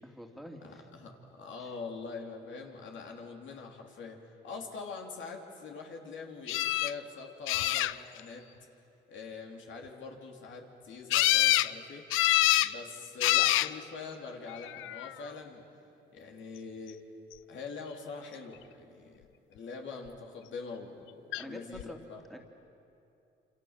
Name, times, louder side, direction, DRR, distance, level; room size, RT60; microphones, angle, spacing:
voice 1, 0.0-0.8 1.6-1.7 21.4-22.0 22.3-22.4, equal, ahead, 1 dB, 2.8 m, -46 dB
voice 2, 0.6-8.5 9.1-12.0 12.6-15.7 16.1-17.0 17.5-22.2, left 4 dB, 70° left, 1 dB, 3.2 m, -44 dB
sound 1, 6.5-6.9 7.5-8.2 11.1-11.7 12.1-12.7 13.2-13.7 14.6-15.1 21.3-21.4 21.8-21.9, left 15 dB, 90° left, 0.5 m, -26 dB
27.5 x 26.5 x 7.4 m, 2.7 s
cardioid pair, 90°, 20 cm